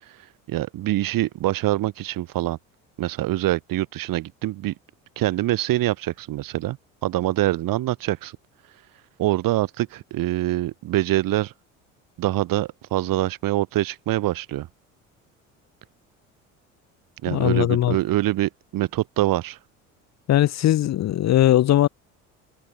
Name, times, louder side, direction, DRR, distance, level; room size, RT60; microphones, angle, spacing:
voice 1, 0.0-2.6 3.0-4.7 5.2-8.4 9.2-11.5 12.2-14.7 17.2-19.6, right 15 dB, 60° right, 3.5 m, -25 dB
voice 2, 17.3-17.9 20.3-21.9, left 13 dB, 45° left, 0.9 m, -19 dB
hypercardioid pair, 65°, 38 cm